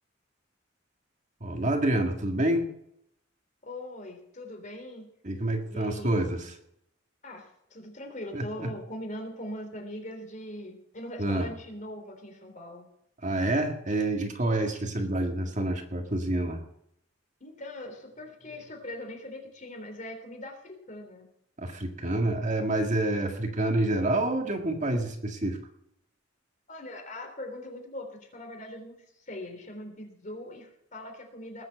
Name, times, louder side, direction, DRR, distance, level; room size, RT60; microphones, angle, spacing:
voice 1, 1.4-2.7 5.2-6.5 8.3-8.7 11.2-11.5 13.2-16.6 21.6-25.6, right 1 dB, 40° right, 4 dB, 1.9 m, -28 dB
voice 2, 3.6-5.1 5.6-6.1 7.2-12.9 17.4-21.3 26.7-31.6, left 1 dB, 40° left, 3 dB, 3.5 m, -41 dB
19.5 x 7.6 x 7.5 m, 0.77 s
head